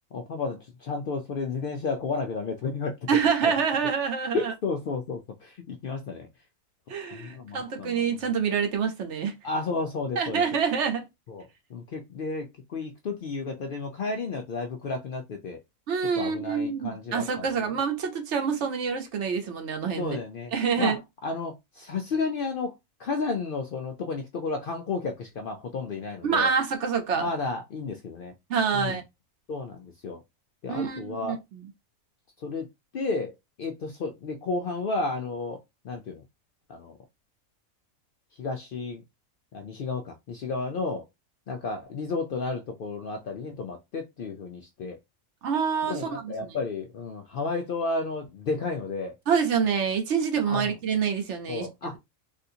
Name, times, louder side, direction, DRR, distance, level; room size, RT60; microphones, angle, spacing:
voice 1, 0.1-3.0 3.4-3.5 4.3-6.3 7.1-8.2 9.4-10.4 11.3-15.6 16.1-17.5 20.0-21.0 21.2-22.7 23.0-26.5 27.1-28.3 28.7-29.0 29.5-30.2 30.6-31.4 32.4-32.7 32.9-36.2 36.7-37.0 38.4-39.0 39.5-41.1 41.5-45.0 45.8-49.2 50.5-50.7 51.5-52.0, left 3 dB, 80° left, 0.4 m, -32 dB
voice 2, 3.1-4.5 6.9-9.3 10.2-11.1 15.9-20.2 20.5-21.0 26.2-27.3 28.5-29.0 30.7-31.7 45.4-46.5 49.3-51.7, right 6 dB, 60° right, 1.0 m, -26 dB
3.5 x 2.4 x 2.7 m
omnidirectional pair, 1.5 m